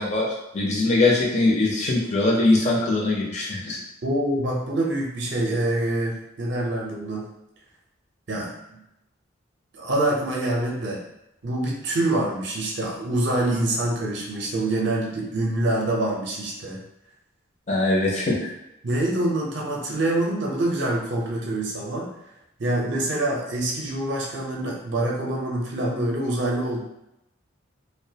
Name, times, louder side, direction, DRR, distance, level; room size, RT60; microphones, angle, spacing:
voice 1, 0.0-3.8 17.7-18.5, left 2 dB, 35° left, -4 dB, 0.5 m, -22 dB
voice 2, 4.0-7.2 8.3-8.8 9.7-11.0 11.4-16.8 18.8-22.1 22.6-26.8, right 1 dB, 60° right, -2 dB, 0.5 m, -25 dB
2.3 x 2.1 x 2.7 m, 0.87 s
head